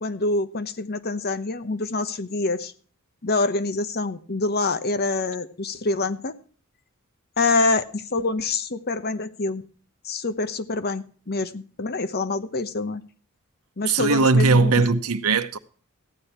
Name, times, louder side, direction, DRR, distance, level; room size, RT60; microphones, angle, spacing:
voice 1, 0.0-2.7 3.2-6.3 7.4-9.6 10.0-13.0 13.8-14.8, left 3 dB, 45° left, 1.0 m, -26 dB
voice 2, 13.9-15.6, right 3 dB, 80° right, 0.9 m, -19 dB
15.0 x 9.9 x 4.4 m
head